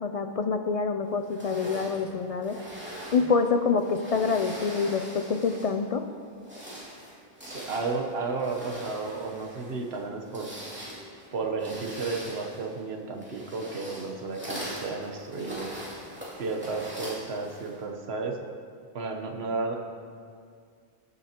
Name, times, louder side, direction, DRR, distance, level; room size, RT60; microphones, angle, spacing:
voice 1, 0.0-2.6 3.1-6.0, left 5 dB, 55° left, 7 dB, 0.4 m, -26 dB
sound 1, 1.3-5.8 6.3-17.8, equal, 10° right, 2.6 m, -42 dB
voice 2, 7.5-10.5 11.3-15.7 16.4-18.4 18.9-19.8, right 3 dB, 80° right, 3 dB, 1.2 m, -33 dB
20.5 x 6.8 x 2.9 m, 2.2 s
omnidirectional pair, 1.0 m